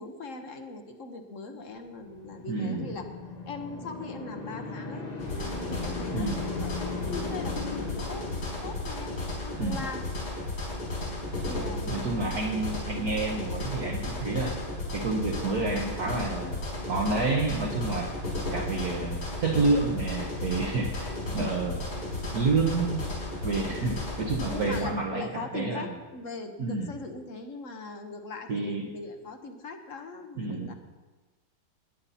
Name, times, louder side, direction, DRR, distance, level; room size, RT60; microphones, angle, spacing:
voice 1, 0.0-3.0 3.5-5.0 5.7-8.3 8.6-10.0 11.4-12.1 12.9-13.1 20.9-21.3 23.5-23.8 24.5-30.7, left 3 dB, 50° left, 6 dB, 1.1 m, -40 dB
sound 1, 1.9-8.9, left 4 dB, 25° left, 1.0 m, -38 dB
voice 2, 2.5-3.0 6.1-6.4 9.6-9.8 11.9-14.6 14.9-18.1 18.5-21.8 22.3-23.1 23.4-25.2 25.5-25.8 26.6-26.9 28.5-28.9 30.4-30.7, right 3 dB, 50° right, -2 dB, 1.5 m, -29 dB
sound 2, 5.2-24.8, left 2 dB, 75° left, 4.8 m, -34 dB
19.5 x 9.6 x 4.2 m, 1.2 s
omnidirectional pair, 2.2 m